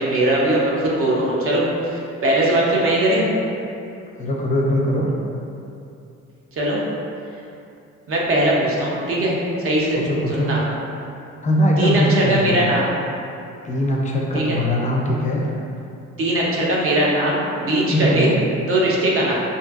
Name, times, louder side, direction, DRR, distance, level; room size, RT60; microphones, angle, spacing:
voice 1, 0.0-3.3 6.6-6.8 8.1-10.0 10.3-10.6 11.8-12.9 14.3-14.6 16.2-18.3 18.7-19.3, right 1 dB, 45° right, -4 dB, 0.6 m, -20 dB
voice 2, 4.2-5.1 9.9-10.6 11.4-12.6 13.6-15.4 17.9-18.4, equal, 25° left, -2 dB, 0.4 m, -21 dB
2.6 x 2.4 x 2.3 m, 2.6 s
cardioid pair, 90°, 30 cm